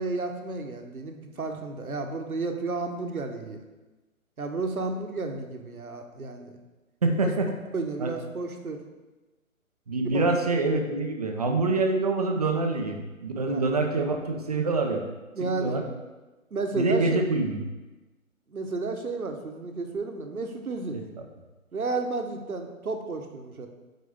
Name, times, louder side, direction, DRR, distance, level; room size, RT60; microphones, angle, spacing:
voice 1, 0.0-3.6 4.4-6.5 7.7-8.8 10.0-10.3 13.4-13.6 15.3-15.8 16.5-17.2 18.5-21.0 21.7-23.7, right 3 dB, 75° right, 5 dB, 1.1 m, -32 dB
voice 2, 7.0-7.5 8.0-8.1 9.9-15.0 15.4-15.9 16.7-17.6 20.9-21.2, right 3 dB, 30° right, 4 dB, 0.6 m, -26 dB
7.8 x 5.0 x 3.6 m, 1.2 s
figure-of-eight pair, 135°, 43 cm